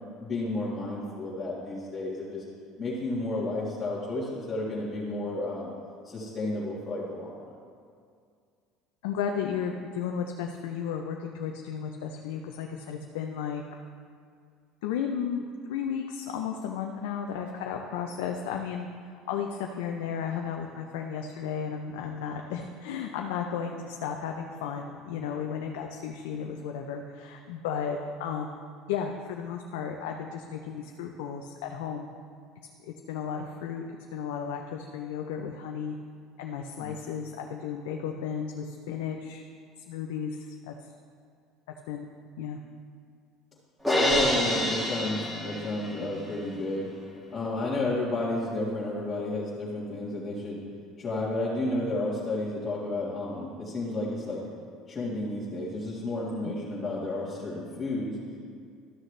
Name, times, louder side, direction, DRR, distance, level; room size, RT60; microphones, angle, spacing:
voice 1, 0.2-2.4 2.8-5.7 6.0-7.3 36.8-36.9 44.0-46.9 47.3-50.6 51.0-54.4 54.9-58.2, left 2 dB, 35° left, -8 dB, 1.8 m, -32 dB
voice 2, 9.0-13.6 14.8-18.9 19.3-28.6 28.9-32.1 32.8-33.8 34.1-36.0 36.4-39.4 39.9-40.7 41.9-42.1 42.4-42.6 56.4-56.6, left 7 dB, 85° left, 2 dB, 0.6 m, -34 dB
Crash cymbal, 43.8-46.1, equal, ahead, 1.8 m, -27 dB
13.0 x 6.3 x 3.3 m, 2.2 s
supercardioid pair, 100°, 0 cm